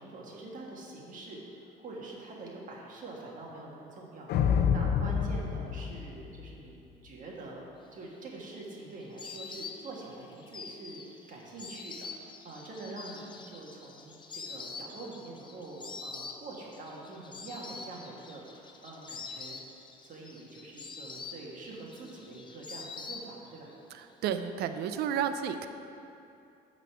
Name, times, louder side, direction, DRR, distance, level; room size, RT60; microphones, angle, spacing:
voice 1, 0.0-1.4 1.8-6.7 7.0-7.6 7.9-11.0 11.3-12.1 12.4-19.6 20.0-23.7, right 2 dB, 50° right, -3 dB, 1.6 m, -45 dB
sound 1, 4.3-6.8, left 7 dB, 70° left, 0.6 m, -28 dB
Insect, 8.0-23.7 24.0-24.8, left 4 dB, 30° left, 0.6 m, -45 dB
voice 2, 24.2-25.7, right 8 dB, 75° right, 9 dB, 0.5 m, -31 dB
9.2 x 4.1 x 6.8 m, 2.8 s
cardioid pair, 110°, 17 cm